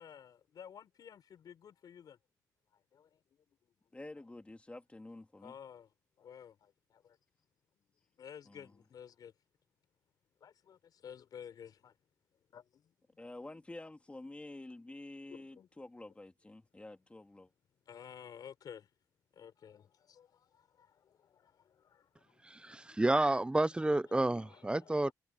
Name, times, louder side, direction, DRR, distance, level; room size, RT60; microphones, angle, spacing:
voice 1, 0.0-2.2 2.7-3.2 4.2-4.3 5.4-7.2 8.2-9.3 10.4-12.0 12.5-12.9 13.5-13.6 15.2-15.7 17.9-18.9 19.3-23.0 24.0-25.1, left 8 dB, 65° left, 5.3 m, -54 dB
voice 2, 3.9-5.5 8.5-8.7 13.2-17.5, left 2 dB, 15° left, 2.5 m, -49 dB
voice 3, 22.5-25.1, right 2 dB, 15° right, 1.0 m, -30 dB
cardioid pair, 70°, 7 cm